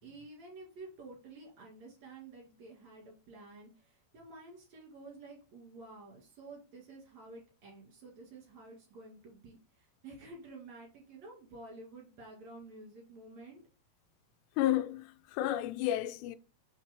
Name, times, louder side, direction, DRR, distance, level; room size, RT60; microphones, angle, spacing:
voice 1, 0.0-13.6, right 2 dB, 50° right, 2.7 m, -51 dB
voice 2, 14.6-16.4, left 13 dB, 85° left, 2.6 m, -31 dB
5.8 x 4.5 x 4.4 m
omnidirectional pair, 5.1 m